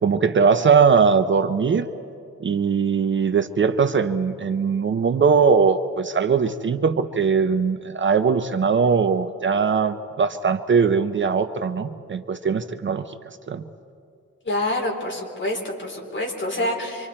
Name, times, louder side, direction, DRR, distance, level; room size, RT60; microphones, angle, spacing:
voice 1, 0.0-1.9 2.4-13.0 13.5-13.6, right 5 dB, 40° right, 9 dB, 0.6 m, -20 dB
voice 2, 14.4-17.1, left 1 dB, 40° left, 0 dB, 3.9 m, -27 dB
26.0 x 26.0 x 4.3 m, 2.5 s
wide cardioid pair, 150°, 30 cm